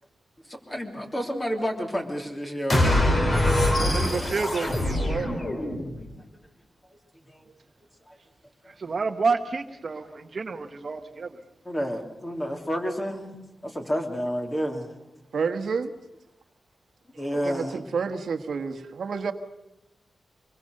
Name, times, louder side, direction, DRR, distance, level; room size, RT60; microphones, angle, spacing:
voice 1, 0.5-3.2 6.0-6.1 7.3-7.4 8.1-8.2 10.1-10.2 11.7-15.0 17.2-17.8, equal, 20° left, 3 dB, 3.3 m, -30 dB
sound 1, 2.7-6.1, left 1 dB, 40° left, 3.8 m, -23 dB
voice 2, 3.7-5.3 8.8-11.4, right 4 dB, 50° right, 7 dB, 1.1 m, -29 dB
voice 3, 15.3-15.9 17.1-19.3, right 5 dB, 80° right, 7 dB, 1.4 m, -30 dB
25.0 x 21.5 x 6.6 m, 0.93 s
wide cardioid pair, 115°, 0 cm